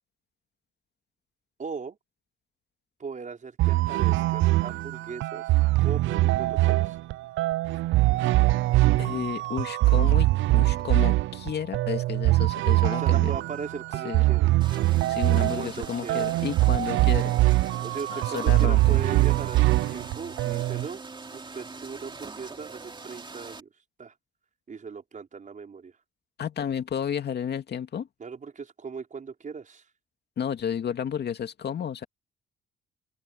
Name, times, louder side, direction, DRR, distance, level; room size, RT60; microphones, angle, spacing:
voice 1, 1.6-2.0 3.0-7.0 12.9-14.5 15.4-16.3 17.8-21.0 21.3-23.7 24.0-24.1 24.7-26.0 28.2-29.8, right 5 dB, 40° right, 5.0 m, -38 dB
sound 1, 3.6-20.9, right 18 dB, 80° right, 0.4 m, -23 dB
voice 2, 9.0-13.3 14.0-14.2 15.1-17.4 18.1-19.0 26.4-28.1 30.4-32.0, left 8 dB, 55° left, 2.3 m, -32 dB
sound 2, 14.6-23.6, right 3 dB, 25° right, 2.7 m, -42 dB
open air
cardioid pair, 90°, 20 cm